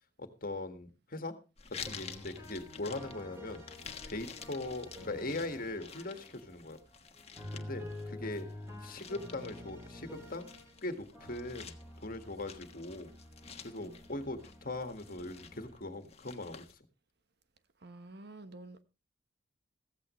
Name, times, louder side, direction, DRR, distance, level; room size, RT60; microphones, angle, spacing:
voice 1, 0.2-1.3 1.8-3.6 4.1-6.8 7.5-8.5 8.8-10.5 10.8-11.8 12.0-13.1 13.6-16.7, left 2 dB, 50° left, 1.9 m, -40 dB
sound 1, 1.6-16.7, left 6 dB, 35° left, 1.4 m, -51 dB
sound 2, 1.7-6.6 7.2-10.8 11.1-15.9, left 1 dB, 15° right, 5.8 m, -49 dB
voice 2, 17.8-18.8, right 2 dB, 65° right, 1.2 m, -49 dB
15.5 x 15.0 x 3.2 m
head